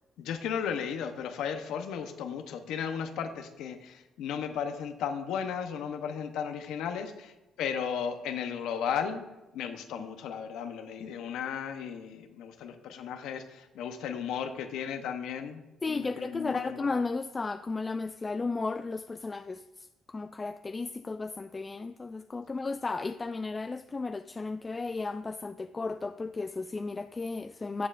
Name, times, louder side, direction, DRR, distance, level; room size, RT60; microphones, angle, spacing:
voice 1, 0.2-9.2 9.5-16.9, left 7 dB, 90° left, 0.9 m, -35 dB
voice 2, 15.8-27.9, left 3 dB, 25° left, 0.3 m, -34 dB
13.5 x 7.4 x 2.5 m
cardioid pair, 90°, 0 cm